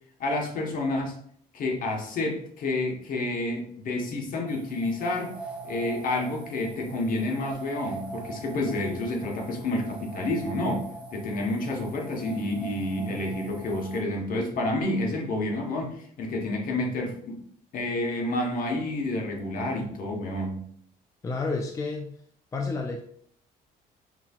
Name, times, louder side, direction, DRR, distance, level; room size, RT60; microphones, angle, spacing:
voice 1, 0.2-1.1 1.5-5.3 5.6-10.8 11.1-17.4 17.7-20.6, left 2 dB, 55° left, 1 dB, 1.1 m, -29 dB
sound 1, 4.4-14.0, right 3 dB, 5° right, 0.8 m, -42 dB
voice 2, 21.2-22.1 22.5-23.0, left 3 dB, 20° left, 3 dB, 0.4 m, -30 dB
5.7 x 2.7 x 2.3 m, 0.63 s
cardioid pair, 110°, 17 cm